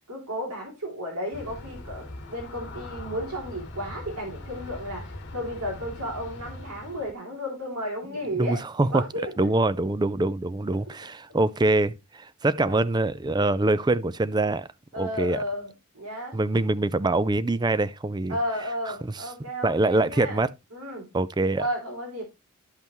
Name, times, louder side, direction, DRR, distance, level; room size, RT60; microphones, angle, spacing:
voice 1, 0.0-9.3 12.6-12.8 14.9-16.3 18.3-20.4 20.7-21.1 21.6-22.2, equal, 90° right, 3.2 m, -33 dB
Aircraft, 1.3-7.1, left 1 dB, 50° left, 1.6 m, -41 dB
voice 2, 8.3-9.0 9.4-14.7 15.0-15.4 16.3-18.4 19.6-20.5 21.1-21.6, right 2 dB, 20° right, 0.4 m, -24 dB
12.0 x 5.5 x 3.1 m
head